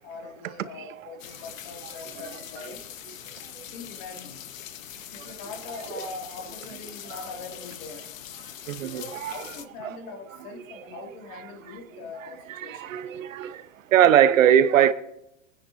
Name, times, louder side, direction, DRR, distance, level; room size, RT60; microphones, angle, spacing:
voice 1, 0.0-2.8 3.7-4.4 5.1-8.0 9.0-12.9, left 3 dB, 35° left, 2.3 m, -41 dB
sound 1, 1.2-9.7, left 11 dB, 80° left, 1.0 m, -42 dB
voice 2, 8.7-9.4 9.8-9.9 11.0-11.1 12.5-13.6 13.9-14.9, right 10 dB, 80° right, 0.9 m, -20 dB
23.5 x 9.9 x 2.7 m
hypercardioid pair, 150°, 39 cm